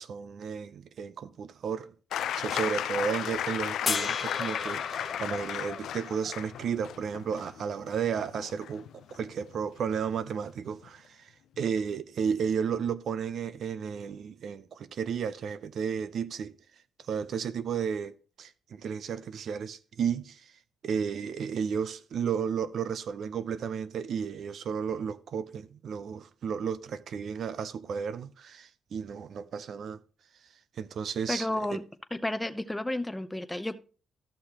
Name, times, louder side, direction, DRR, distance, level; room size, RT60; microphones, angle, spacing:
voice 1, 0.0-1.9 2.3-16.5 17.1-18.1 18.4-20.5 20.8-30.0 30.8-31.8, right 7 dB, 60° right, 0.5 m, -33 dB
sound 1, 2.1-9.6 10.8-10.9, left 10 dB, 75° left, 0.4 m, -35 dB
sound 2, 3.9-7.1 9.1-9.2, left 5 dB, 40° left, 1.1 m, -35 dB
voice 2, 31.3-31.8 32.1-33.8, left 1 dB, 10° left, 0.7 m, -32 dB
13.0 x 6.5 x 2.9 m
cardioid pair, 90°, 0 cm